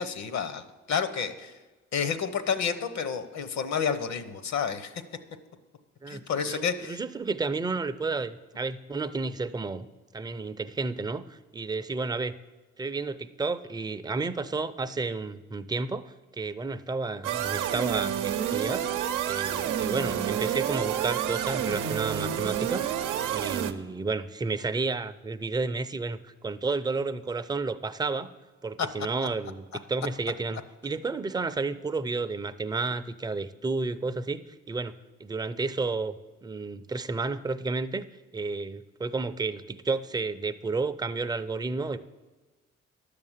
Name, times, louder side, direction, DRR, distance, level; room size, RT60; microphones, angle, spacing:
voice 1, 0.0-1.5 1.9-4.9 6.1-7.0 28.8-28.9, left 6 dB, 65° left, 11 dB, 0.9 m, -30 dB
voice 2, 6.5-9.9 10.1-12.3 12.8-18.8 19.3-22.8 23.3-28.3 28.6-34.4 34.7-34.9 35.2-36.1 36.4-38.1 38.3-42.0, right 3 dB, 15° right, 9 dB, 0.5 m, -31 dB
sound 1, 17.2-23.7, right 10 dB, 90° right, 0.7 m, -29 dB
10.5 x 6.7 x 7.3 m, 1.2 s
cardioid pair, 90°, 30 cm